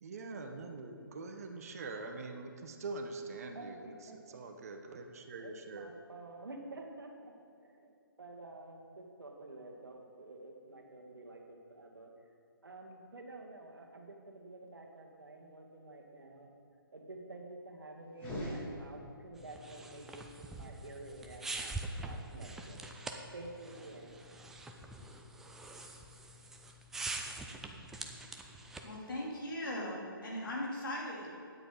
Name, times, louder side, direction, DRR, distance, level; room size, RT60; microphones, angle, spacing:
voice 1, 0.0-5.9, right 3 dB, 40° right, 5 dB, 1.0 m, -44 dB
voice 2, 4.1-4.4 5.4-12.1 12.6-16.5 16.9-22.9 23.3-24.2, right 2 dB, 65° right, 1 dB, 1.9 m, -50 dB
sound 1, 18.1-19.4, equal, 15° left, 2.2 m, -41 dB
sound 2, 19.4-29.0, right 2 dB, 5° right, 0.4 m, -44 dB
voice 3, 28.8-31.4, left 1 dB, 60° left, -4 dB, 3.1 m, -39 dB
13.0 x 9.5 x 3.9 m, 2.3 s
figure-of-eight pair, 140°, 12 cm